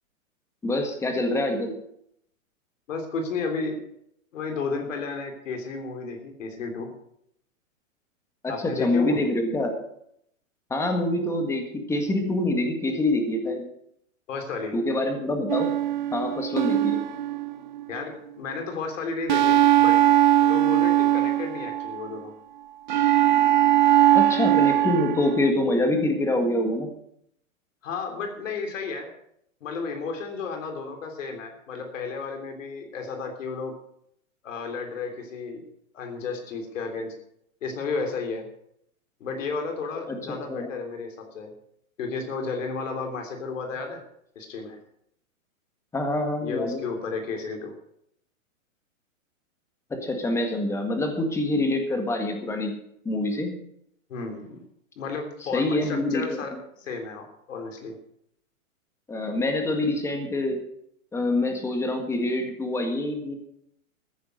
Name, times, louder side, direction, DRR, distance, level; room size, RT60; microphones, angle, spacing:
voice 1, 0.6-1.7 8.8-9.7 10.7-13.6 14.7-15.7 16.1-17.0 24.1-26.9 40.1-40.7 45.9-46.8 49.9-52.7 53.0-53.5 55.5-56.4 59.1-60.6 61.1-63.3, left 1 dB, 5° left, 5 dB, 1.7 m, -25 dB
voice 2, 2.9-3.8 4.3-6.9 8.5-9.3 14.3-14.8 17.9-20.0 20.4-22.3 27.8-29.1 29.6-33.7 34.4-35.6 35.9-37.1 37.6-38.4 39.2-41.5 42.0-44.0 44.3-44.8 46.4-47.7 54.1-54.6 55.0-58.0, left 4 dB, 65° left, 4 dB, 3.4 m, -33 dB
sound 1, 15.5-18.0 19.3-22.1 22.9-25.5, right 13 dB, 35° right, 0.4 m, -20 dB
14.5 x 10.0 x 6.5 m, 0.73 s
hypercardioid pair, 160°, 41 cm